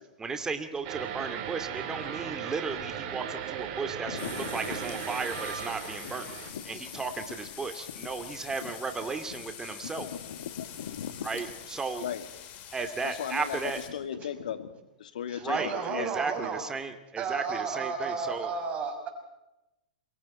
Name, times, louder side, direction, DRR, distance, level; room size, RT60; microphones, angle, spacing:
voice 1, 0.2-10.1 11.2-12.1 12.7-13.8 15.4-18.5, right 4 dB, 15° right, 7 dB, 2.4 m, -35 dB
sound 1, 0.8-6.5, right 9 dB, 45° right, 4.1 m, -37 dB
voice 2, 4.1-4.8 6.0-6.6 6.9-7.4 8.0-8.1 8.6-8.7 9.3-9.4 10.0-11.4 12.0-12.2 12.6-12.7 13.0-16.1, left 9 dB, 70° left, 9 dB, 2.4 m, -38 dB
sound 2, 4.2-13.9, left 10 dB, 40° left, 3.7 m, -45 dB
voice 3, 15.3-16.6 17.2-19.1, right 5 dB, 30° right, 4 dB, 6.1 m, -33 dB
27.5 x 23.5 x 4.4 m, 0.94 s
hypercardioid pair, 115°, 4 cm